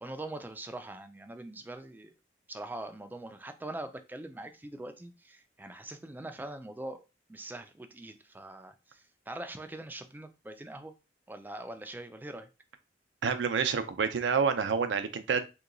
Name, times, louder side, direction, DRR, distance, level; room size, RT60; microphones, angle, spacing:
voice 1, 0.0-2.1 2.5-7.0 7.3-10.9 11.3-12.5, right 1 dB, 10° right, 0.3 m, -43 dB
voice 2, 13.2-15.5, right 6 dB, 80° right, 0.5 m, -28 dB
2.8 x 2.2 x 3.7 m
head